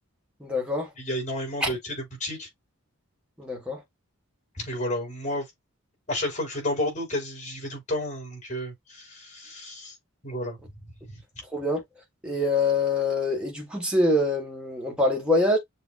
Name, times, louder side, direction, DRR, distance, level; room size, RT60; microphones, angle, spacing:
voice 1, 0.4-0.9 1.6-1.7 3.4-3.8 11.5-11.8 12.2-15.6, left 2 dB, 5° right, 1.6 m, -24 dB
voice 2, 1.0-2.5 4.5-5.5 6.1-10.0 10.2-10.7 11.0-11.2, left 1 dB, 35° left, 4.1 m, -31 dB
7.0 x 2.8 x 2.6 m
head